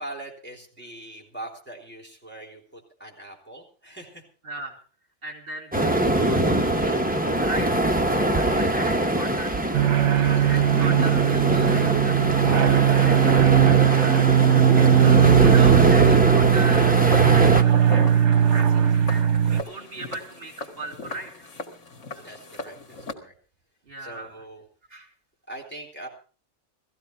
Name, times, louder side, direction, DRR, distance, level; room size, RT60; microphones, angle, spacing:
voice 1, 0.0-4.2 8.5-9.4 10.1-10.6 22.2-23.3 24.0-24.6 25.5-26.1, right 1 dB, 10° left, 0 dB, 3.9 m, -42 dB
voice 2, 4.4-4.8 5.2-7.9 8.4-9.6 10.2-14.2 14.6-18.0 18.3-21.5 22.1-22.3 23.8-24.5 24.9-25.1, right 2 dB, 50° right, 3 dB, 3.3 m, -39 dB
sound 1, 5.7-17.6, right 1 dB, 10° right, 1.1 m, -23 dB
sound 2, 9.7-19.6, right 9 dB, 70° right, 1.3 m, -18 dB
Walk footsteps, 17.1-23.1, left 2 dB, 80° left, 2.4 m, -37 dB
18.0 x 15.0 x 4.5 m, 0.38 s
omnidirectional pair, 1.2 m